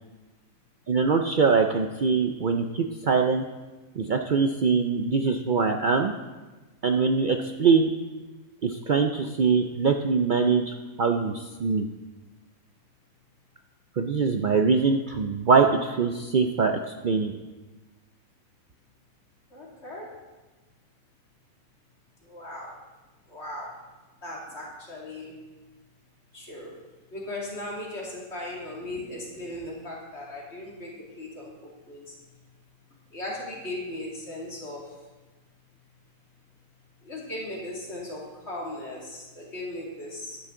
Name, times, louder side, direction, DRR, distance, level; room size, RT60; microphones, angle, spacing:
voice 1, 0.9-3.4 4.0-6.1 6.8-7.9 8.6-11.9 14.0-17.3, right 5 dB, 85° right, 5 dB, 0.4 m, -23 dB
voice 2, 19.5-20.1 22.3-22.7 23.3-23.8 24.2-25.3 26.3-26.7 27.1-32.0 33.1-34.9 37.0-40.4, left 1 dB, 45° left, -4 dB, 2.7 m, -37 dB
12.0 x 10.5 x 3.8 m, 1.2 s
omnidirectional pair, 1.6 m